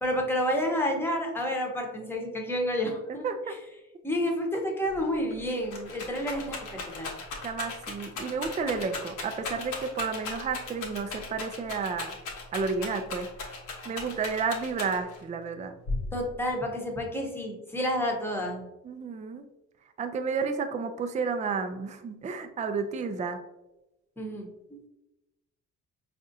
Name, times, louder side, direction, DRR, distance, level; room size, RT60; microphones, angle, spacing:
voice 1, 0.0-3.6 4.0-7.1 16.1-18.7 24.2-24.8, equal, 5° left, 0 dB, 0.8 m, -30 dB
voice 2, 3.2-3.6 7.4-12.1 12.5-13.3 13.9-15.7 18.8-19.4 20.0-23.4, right 5 dB, 25° right, 7 dB, 0.3 m, -31 dB
Rattle, 4.9-5.0 5.3-15.2 15.9-16.5, left 3 dB, 85° left, 1.0 m, -37 dB
4.7 x 2.5 x 2.6 m, 0.95 s
cardioid pair, 90°, 30 cm